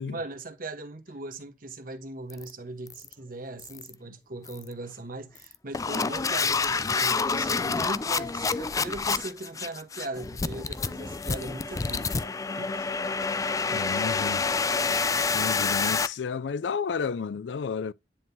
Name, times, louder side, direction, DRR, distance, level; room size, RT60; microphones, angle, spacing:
voice 1, 0.0-12.9 13.7-13.9, right 2 dB, 55° right, 1.2 m, -39 dB
sound 1, 2.3-2.5 2.9-3.1 3.6-3.9 4.5-4.7 5.4-16.1, left 4 dB, 20° left, 0.3 m, -28 dB
voice 2, 13.7-14.5 15.3-17.9, left 6 dB, 85° left, 0.4 m, -31 dB
10.0 x 3.7 x 2.8 m
head